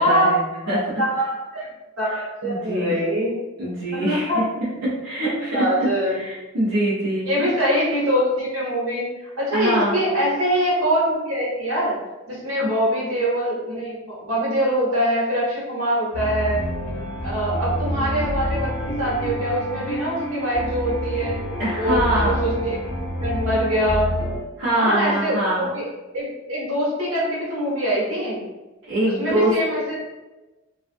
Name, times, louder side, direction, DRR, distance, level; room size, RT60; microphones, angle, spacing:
voice 1, 0.0-0.8 2.4-3.0 3.6-4.3 4.8-5.6 6.1-7.5 9.5-10.0 21.6-22.4 24.6-25.7 28.8-29.5, right 1 dB, 65° right, -10 dB, 0.7 m, -23 dB
voice 2, 0.7-1.7 2.0-3.4 3.9-4.5 5.2-6.2 7.2-9.1 9.4-11.9 12.3-16.6 17.2-21.4 21.7-22.8 23.2-24.1 24.7-25.9 26.1-28.4 29.2-30.0, equal, 85° right, -7 dB, 1.1 m, -23 dB
sound 1, 16.1-24.4, left 1 dB, 75° left, 0.6 m, -28 dB
2.5 x 2.3 x 2.4 m, 1.1 s
head